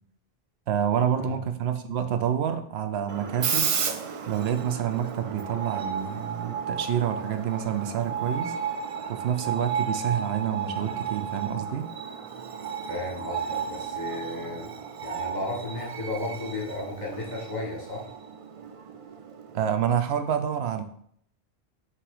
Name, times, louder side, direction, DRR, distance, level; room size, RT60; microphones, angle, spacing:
voice 1, 0.7-3.7 4.3-8.5 9.1-11.9 19.5-20.8, right 9 dB, 85° right, 8 dB, 0.9 m, -28 dB
Screech, 3.1-19.7, right 7 dB, 50° right, 0.4 m, -33 dB
voice 2, 12.9-14.7 15.0-18.1, left 2 dB, 45° left, -2 dB, 1.6 m, -34 dB
5.9 x 3.3 x 4.8 m, 0.65 s
omnidirectional pair, 1.0 m